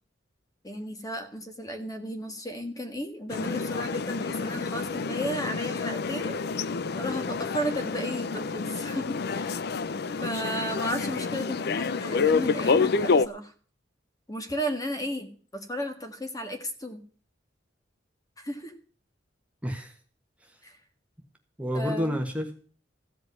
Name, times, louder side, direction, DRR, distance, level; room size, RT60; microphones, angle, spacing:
voice 1, 0.6-6.4 7.0-9.7 10.2-13.5 14.3-15.3 15.7-17.0 18.4-18.7 20.6-20.8 21.7-22.2, equal, 20° left, 6 dB, 1.7 m, -34 dB
sound 1, 3.3-13.3, left 4 dB, 60° left, 0.5 m, -28 dB
voice 2, 19.6-19.9 21.6-22.5, equal, 5° right, 3 dB, 1.4 m, -29 dB
15.5 x 5.2 x 9.4 m, 0.43 s
head